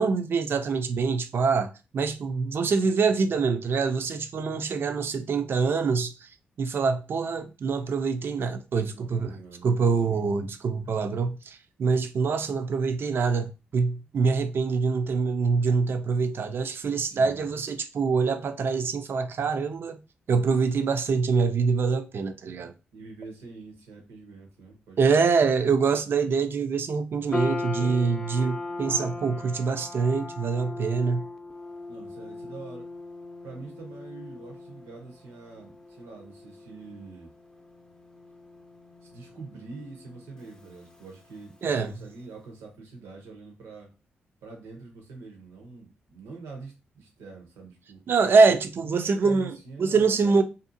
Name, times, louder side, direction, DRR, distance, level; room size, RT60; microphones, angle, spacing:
voice 1, 0.0-6.3 6.6-9.4 9.6-20.0 20.3-22.7 25.0-31.3 41.6-41.9 48.1-50.4, right 4 dB, 55° right, 0.4 m, -25 dB
voice 2, 8.9-9.7 10.0-10.3 17.0-17.5 22.9-25.3 27.8-28.3 31.9-32.9 33.4-37.3 39.0-43.9 44.4-48.1 48.8-50.4, right 4 dB, 85° right, 0.8 m, -45 dB
sound 1, 27.3-41.7, left 2 dB, 15° left, 0.5 m, -39 dB
2.6 x 2.4 x 2.6 m
hypercardioid pair, 40°, 4 cm